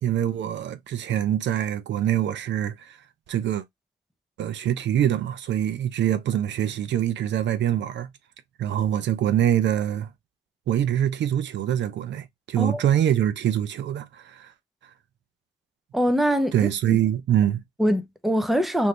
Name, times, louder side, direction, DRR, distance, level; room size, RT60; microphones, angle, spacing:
voice 1, 0.0-3.0 3.3-3.6 4.4-8.1 8.6-10.1 10.7-14.5 16.5-17.6, right 11 dB, 65° right, 0.6 m, -24 dB
voice 2, 15.9-17.0 17.8-18.9, equal, ahead, 0.6 m, -23 dB
3.2 x 2.7 x 2.9 m
cardioid pair, 90°, 20 cm